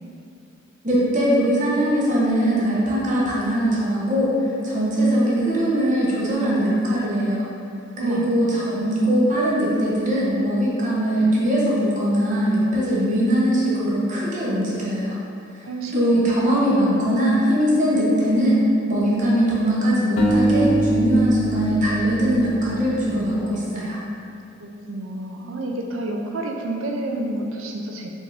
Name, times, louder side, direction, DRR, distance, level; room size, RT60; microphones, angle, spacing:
voice 1, 0.8-4.3 4.6-7.4 8.0-15.2 15.9-24.0, equal, 40° right, -6 dB, 0.8 m, -21 dB
voice 2, 8.0-8.4 15.6-16.2 24.6-28.1, right 1 dB, 85° right, 0 dB, 0.5 m, -29 dB
sound 1, 20.2-23.4, right 1 dB, 80° left, 0.5 m, -23 dB
4.5 x 2.6 x 3.3 m, 2.4 s
head